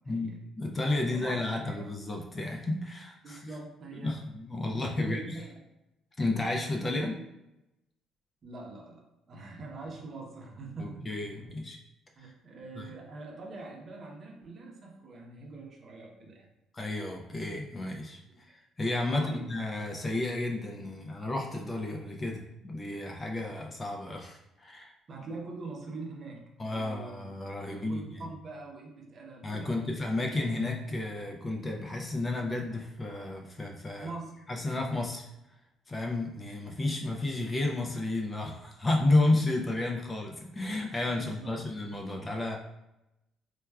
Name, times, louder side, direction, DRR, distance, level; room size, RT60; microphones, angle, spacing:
voice 1, 0.1-0.4 1.0-1.8 3.2-4.1 5.0-5.5 6.8-7.2 8.4-11.3 12.2-16.5 18.3-18.4 19.1-19.4 25.1-27.2 27.7-29.9 34.0-34.4 41.1-41.6, right 3 dB, 40° right, -1 dB, 0.7 m, -44 dB
voice 2, 0.6-3.5 4.0-5.4 6.2-7.1 10.8-11.8 12.2-12.3 12.8-12.9 16.7-24.9 26.6-28.3 29.4-34.1 34.5-35.2 35.9-42.6, left 2 dB, 20° left, 1 dB, 0.4 m, -32 dB
4.2 x 2.3 x 2.3 m, 0.91 s
cardioid pair, 125°, 0 cm